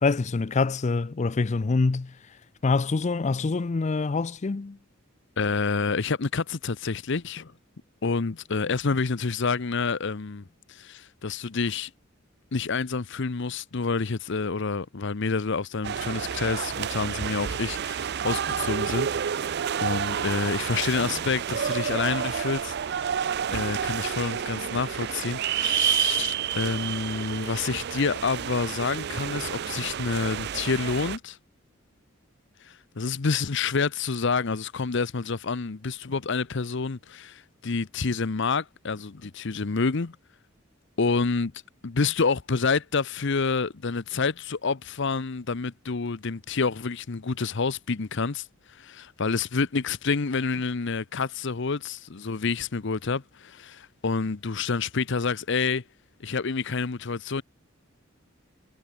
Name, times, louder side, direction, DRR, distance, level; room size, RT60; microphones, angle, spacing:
voice 1, 0.0-2.1 2.6-4.8, left 3 dB, 35° left, 0.5 m, -25 dB
voice 2, 5.4-7.5 8.0-11.9 12.5-23.2 23.5-31.4 32.6-40.2 41.0-41.5 41.8-55.8 56.2-57.4, left 4 dB, 60° left, 0.8 m, -28 dB
sound 1, 15.8-31.2, right 8 dB, 55° right, 0.4 m, -29 dB
head